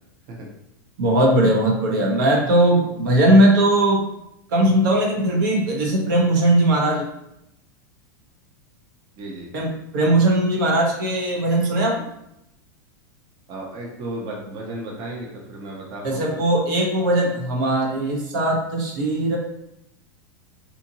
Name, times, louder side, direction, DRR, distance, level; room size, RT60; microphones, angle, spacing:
voice 1, 1.0-4.0 4.5-7.1 9.5-9.7 9.9-12.0 16.0-19.4, right 1 dB, 70° right, -1 dB, 0.9 m, -19 dB
voice 2, 9.2-9.5 13.5-16.4, right 1 dB, 40° right, -2 dB, 0.7 m, -34 dB
2.9 x 2.5 x 2.6 m, 0.81 s
hypercardioid pair, 110°, 11 cm